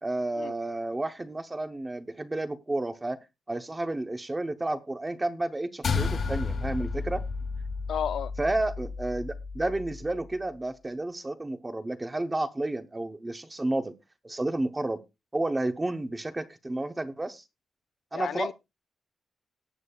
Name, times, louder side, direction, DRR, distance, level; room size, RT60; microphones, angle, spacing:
voice 1, 0.0-3.2 3.5-7.2 8.4-13.9 14.2-15.0 15.3-17.4 18.1-18.5, right 2 dB, 15° right, 0.8 m, -31 dB
sound 1, 5.8-10.4, left 4 dB, 50° left, 1.8 m, -32 dB
voice 2, 7.9-8.3 18.1-18.5, left 9 dB, 70° left, 0.5 m, -32 dB
18.0 x 8.2 x 2.3 m
wide cardioid pair, 170°, 0 cm